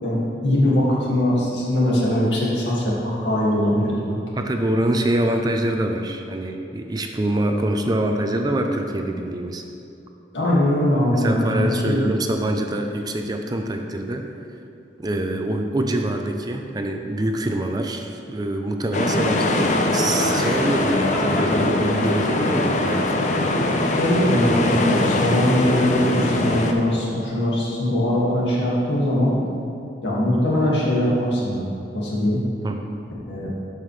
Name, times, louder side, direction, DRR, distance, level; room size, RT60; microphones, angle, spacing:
voice 1, 0.0-4.2 10.3-12.0 24.0-29.4 30.0-31.7 31.9-32.4 33.3-33.5, left 1 dB, 80° left, -5 dB, 2.0 m, -21 dB
voice 2, 4.4-9.6 11.1-14.3 15.0-23.2 32.6-32.8, right 1 dB, 20° right, 4 dB, 0.4 m, -25 dB
sound 1, 18.9-26.7, left 2 dB, 40° left, 0.6 m, -22 dB
Laughter, 19.5-22.2 25.0-25.8 26.1-26.6, equal, 5° left, 1.0 m, -34 dB
12.0 x 5.6 x 3.2 m, 2.7 s
head